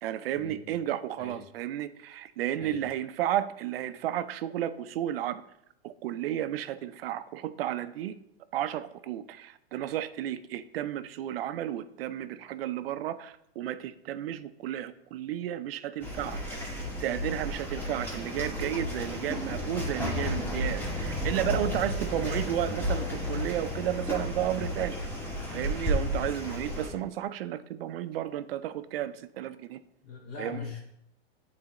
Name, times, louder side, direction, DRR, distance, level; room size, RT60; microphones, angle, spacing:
voice 1, 0.0-5.4 5.8-8.2 8.5-25.0 25.5-29.8 30.4-30.7, right 12 dB, 65° right, 13 dB, 0.5 m, -33 dB
sound 1, 16.0-26.9, left 1 dB, 5° left, 0.9 m, -33 dB
voice 2, 30.0-30.8, left 4 dB, 30° left, -1 dB, 1.2 m, -40 dB
8.7 x 4.1 x 2.9 m, 0.77 s
hypercardioid pair, 140°, 31 cm